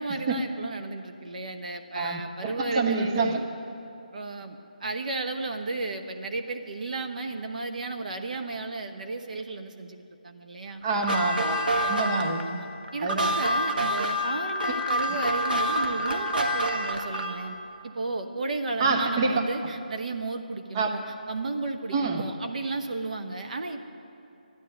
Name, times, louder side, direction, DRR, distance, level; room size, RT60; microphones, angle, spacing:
voice 1, 0.0-3.4 4.1-10.8 12.5-17.6 17.8-21.0 21.3-23.9, right 3 dB, 55° right, 5 dB, 1.0 m, -33 dB
voice 2, 1.9-3.4 10.8-11.6 11.8-12.6 13.0-13.4 18.8-19.4 20.7-20.9 21.9-22.2, right 3 dB, 30° right, 3 dB, 1.1 m, -26 dB
sound 1, 10.9-17.5, equal, 85° right, 1.7 m, -27 dB
13.0 x 11.0 x 9.7 m, 2.7 s
figure-of-eight pair, 160°, 5 cm